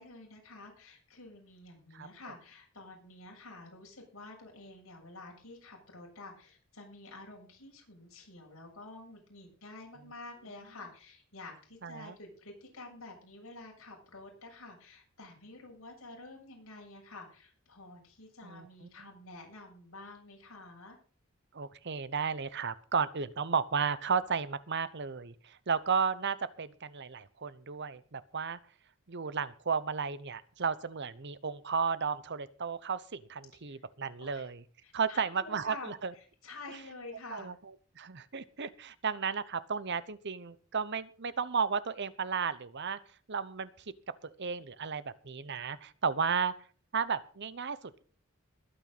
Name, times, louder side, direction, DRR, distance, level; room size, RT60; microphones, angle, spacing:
voice 1, 0.0-21.0 33.5-33.8 34.2-34.5 34.8-37.6, left 2 dB, 70° left, 0 dB, 7.4 m, -49 dB
voice 2, 11.8-12.1 18.4-18.7 21.5-28.6 29.1-34.6 34.9-36.1 37.3-37.5 38.0-43.0 43.3-43.7 44.2-46.6 46.9-48.0, right 6 dB, 50° right, 16 dB, 0.9 m, -33 dB
21.0 x 9.0 x 4.1 m, 0.41 s
head